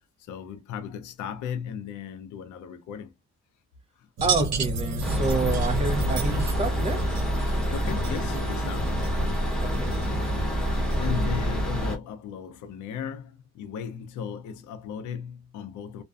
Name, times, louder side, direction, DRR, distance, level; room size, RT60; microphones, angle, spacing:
voice 1, 0.2-3.1 4.0-4.1 7.7-9.0 11.0-16.0, left 7 dB, 75° left, 0.5 m, -36 dB
voice 2, 4.2-7.1 9.6-9.9, right 3 dB, 20° right, 0.6 m, -29 dB
sound 1, 4.2-11.2, right 3 dB, 60° right, 0.7 m, -33 dB
sound 2, 5.0-12.0, equal, ahead, 1.0 m, -27 dB
2.5 x 2.1 x 2.3 m
cardioid pair, 90°, 30 cm